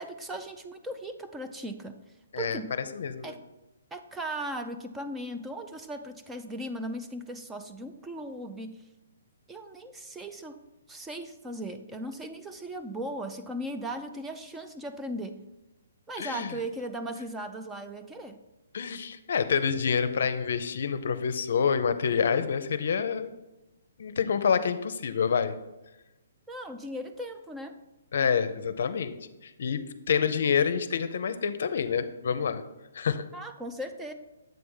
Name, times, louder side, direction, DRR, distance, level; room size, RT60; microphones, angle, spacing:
voice 1, 0.0-2.0 2.4-2.8 3.2-3.4 3.9-8.8 9.5-10.6 10.9-15.4 16.1-18.4 26.5-27.8 33.3-34.1, right 1 dB, 5° right, 6 dB, 0.3 m, -37 dB
voice 2, 2.9-3.4 16.2-16.6 18.7-23.3 24.0-25.5 28.1-29.2 29.4-32.6 32.9-33.2, left 6 dB, 65° left, 12 dB, 0.5 m, -27 dB
7.7 x 3.4 x 5.4 m, 1.0 s
hypercardioid pair, 160°, 0 cm